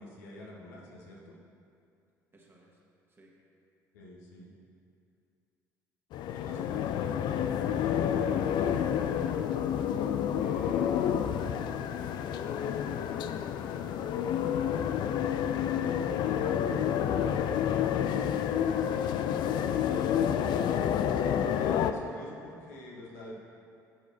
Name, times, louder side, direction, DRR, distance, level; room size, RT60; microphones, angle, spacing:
voice 1, 0.0-1.4 3.9-4.5 6.3-8.5 21.5-23.3, left 1 dB, 70° left, -3 dB, 1.2 m, -48 dB
voice 2, 2.3-2.8 3.1-3.4 10.4-11.5 12.7-13.1 13.8-17.0, right 2 dB, 25° right, -3 dB, 1.9 m, -53 dB
sound 1, 6.1-21.9, left 9 dB, 50° left, 0.4 m, -29 dB
12.0 x 8.1 x 3.0 m, 2.5 s
figure-of-eight pair, 55°, 10 cm